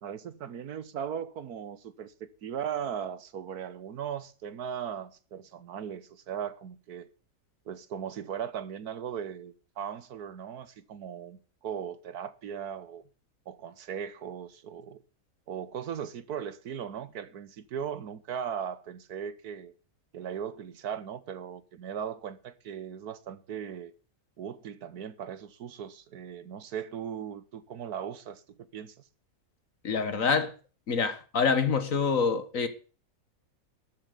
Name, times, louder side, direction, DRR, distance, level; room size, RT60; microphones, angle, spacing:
voice 1, 0.0-7.1 7.7-13.0 13.5-15.0 15.5-19.7 20.1-23.9 24.4-28.9, right 8 dB, 75° right, 1.6 m, -38 dB
voice 2, 29.8-30.5 30.9-32.7, left 5 dB, 55° left, 1.8 m, -26 dB
13.0 x 7.6 x 8.3 m
omnidirectional pair, 1.7 m